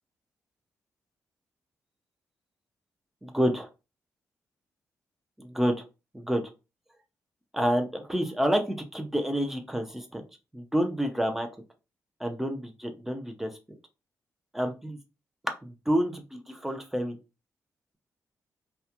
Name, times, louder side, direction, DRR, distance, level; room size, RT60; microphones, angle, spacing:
voice 1, 3.2-3.7 5.4-5.8 6.1-6.4 7.5-10.2 10.5-11.5 12.2-13.5 14.5-15.0 15.6-17.2, equal, 5° right, 4 dB, 0.4 m, -28 dB
2.3 x 2.1 x 2.8 m, 0.28 s
wide cardioid pair, 165°, 6 cm